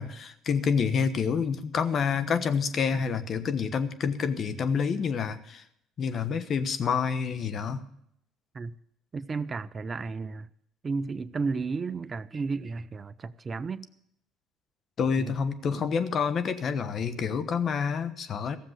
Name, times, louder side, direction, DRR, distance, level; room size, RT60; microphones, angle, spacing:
voice 1, 0.0-5.6 6.0-7.8 15.0-18.6, left 6 dB, 50° left, 1.1 m, -28 dB
voice 2, 9.1-10.5 10.8-13.9 15.2-15.4 15.7-15.9, right 4 dB, 35° right, 0.5 m, -33 dB
15.0 x 7.4 x 8.0 m
supercardioid pair, 70°, 0 cm